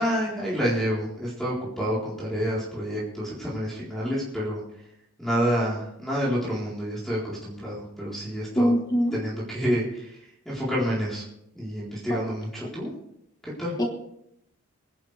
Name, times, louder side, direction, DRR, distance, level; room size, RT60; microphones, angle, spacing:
voice 1, 0.0-4.9 5.2-8.7 9.1-11.2 11.5-12.9 13.4-13.8, equal, ahead, -6 dB, 4.0 m, -28 dB
voice 2, 8.6-9.1 12.1-12.2 13.8-13.9, equal, 20° left, 3 dB, 1.4 m, -22 dB
23.0 x 11.0 x 3.4 m, 0.78 s
head